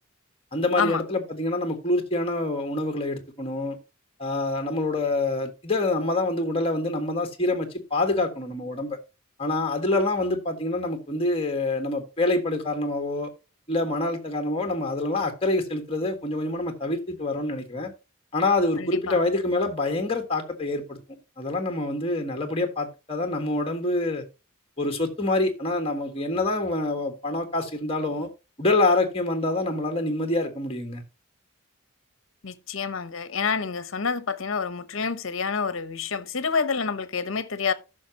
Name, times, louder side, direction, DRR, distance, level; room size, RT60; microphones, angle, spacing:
voice 1, 0.5-3.8 4.2-9.0 9.4-13.3 13.7-17.9 18.3-21.0 21.4-24.2 24.8-28.3 28.6-31.0, left 2 dB, 25° left, 1.6 m, -26 dB
voice 2, 18.8-19.2 32.4-37.7, left 5 dB, 65° left, 0.9 m, -28 dB
14.5 x 6.1 x 2.9 m
head